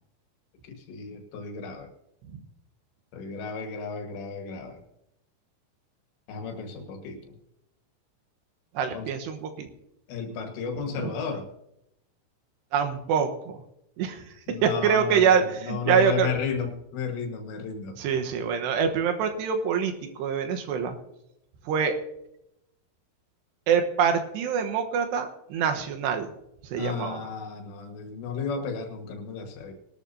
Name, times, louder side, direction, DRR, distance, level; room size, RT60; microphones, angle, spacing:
voice 1, 0.6-1.9 3.1-4.8 6.3-7.4 8.9-9.1 10.1-11.5 14.5-18.0 26.8-29.7, left 6 dB, 85° left, 4 dB, 3.8 m, -33 dB
voice 2, 8.7-9.7 10.9-11.1 12.7-13.6 14.0-14.2 14.6-16.3 18.0-19.9 20.2-21.0 21.7-21.9 23.7-26.3 26.7-27.2, right 7 dB, 80° right, 5 dB, 3.3 m, -25 dB
21.5 x 12.5 x 2.7 m, 0.83 s
omnidirectional pair, 4.9 m